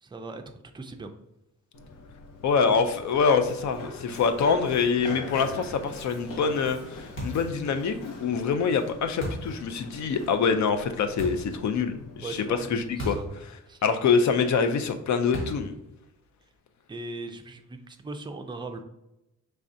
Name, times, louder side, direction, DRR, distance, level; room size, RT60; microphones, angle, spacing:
voice 1, 0.0-0.4 0.7-1.1 2.7-2.8 12.2-12.7 13.0-13.3 13.7-13.8 16.9-18.8, right 3 dB, 15° right, 5 dB, 0.3 m, -38 dB
Run, 1.7-13.3, left 2 dB, 85° left, 0.9 m, -43 dB
voice 2, 2.4-13.2 13.8-15.7, left 5 dB, 65° left, 8 dB, 0.5 m, -25 dB
sound 1, 7.2-7.5 9.2-9.6 11.2-11.5 13.0-13.3 13.6-13.7 15.3-15.7, equal, 40° left, 1.4 m, -34 dB
4.7 x 3.3 x 2.6 m, 0.91 s
wide cardioid pair, 145°, 31 cm